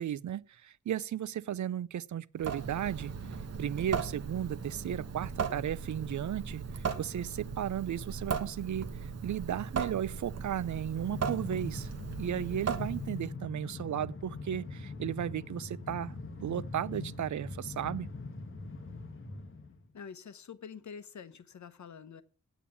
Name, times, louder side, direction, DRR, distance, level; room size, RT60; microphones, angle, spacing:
voice 1, 0.0-3.1 3.6-11.9 12.2-16.1 16.4-18.1, right 10 dB, 75° right, 0.5 m, -35 dB
Water tap faucet / Sink (filling or washing) / Drip, 2.4-13.3, right 6 dB, 55° right, 1.1 m, -37 dB
Train, 11.0-19.8, left 3 dB, 45° left, 1.5 m, -42 dB
voice 2, 19.9-22.2, left 6 dB, 75° left, 1.0 m, -46 dB
9.1 x 8.5 x 7.0 m
wide cardioid pair, 160°, 29 cm